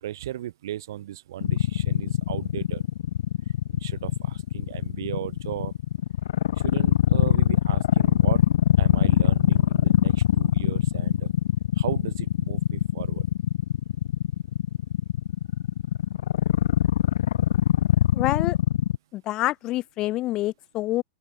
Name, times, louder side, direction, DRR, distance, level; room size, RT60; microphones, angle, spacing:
voice 1, 0.0-2.8 3.7-5.7 6.6-8.4 8.8-11.3 11.8-13.2, right 12 dB, 75° right, 1.3 m, -36 dB
sound 1, 1.4-19.0, left 11 dB, 90° left, 0.5 m, -22 dB
voice 2, 18.1-18.6 19.1-21.0, left 16 dB, 30° left, 0.9 m, -27 dB
open air
supercardioid pair, 165°, 2 cm